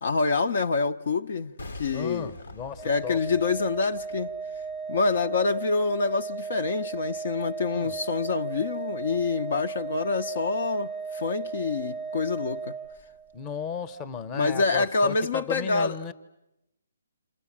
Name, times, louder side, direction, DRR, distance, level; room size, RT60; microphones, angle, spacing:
voice 1, 0.0-2.3 2.8-4.3 4.9-12.7 14.3-16.1, left 4 dB, 60° left, 1.0 m, -26 dB
sound 1, 1.6-6.6 6.9-7.0, left 2 dB, 80° left, 1.4 m, -47 dB
voice 2, 1.9-3.2 7.7-8.0 13.3-16.1, left 6 dB, 20° left, 1.1 m, -35 dB
Organ, 2.8-13.5, right 5 dB, 5° right, 0.9 m, -36 dB
29.0 x 27.5 x 7.4 m
hypercardioid pair, 145°, 0 cm